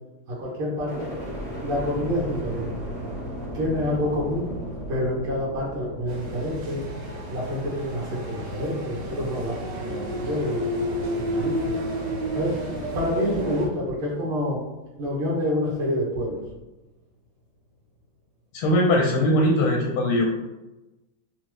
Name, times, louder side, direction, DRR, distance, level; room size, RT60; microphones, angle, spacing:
voice 1, 0.3-1.1 1.6-2.7 3.5-4.5 4.9-6.8 7.3-11.7 12.3-12.5 12.9-14.6 15.0-16.4, left 1 dB, 90° right, -5 dB, 1.9 m, -27 dB
sound 1, 0.8-14.9 15.4-16.1, right 1 dB, 30° left, 0.3 m, -38 dB
sound 2, 6.1-13.7, equal, 65° right, 1.2 m, -31 dB
voice 2, 18.5-20.3, left 1 dB, 80° left, -1 dB, 1.4 m, -20 dB
4.0 x 2.0 x 3.1 m, 1.0 s
omnidirectional pair, 2.4 m